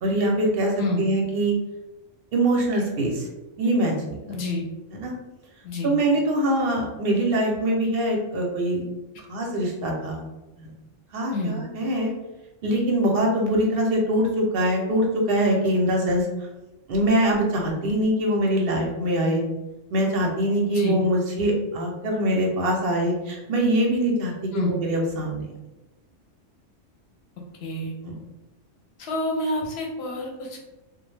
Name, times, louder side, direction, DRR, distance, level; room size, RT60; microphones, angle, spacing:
voice 1, 0.0-1.5 2.3-3.2 3.6-4.2 4.9-5.1 5.8-8.8 9.3-10.2 10.6-10.7 11.1-12.1 12.6-16.3 16.9-19.4 19.9-25.5 28.0-28.1, right 1 dB, 60° right, 0 dB, 0.7 m, -23 dB
voice 2, 0.8-1.1 4.3-4.7 5.6-6.0 11.3-11.6 20.6-21.0 24.5-24.8 27.6-27.9 29.0-30.6, left 2 dB, 65° left, -1 dB, 0.8 m, -28 dB
2.4 x 2.1 x 3.1 m, 1.0 s
omnidirectional pair, 1.3 m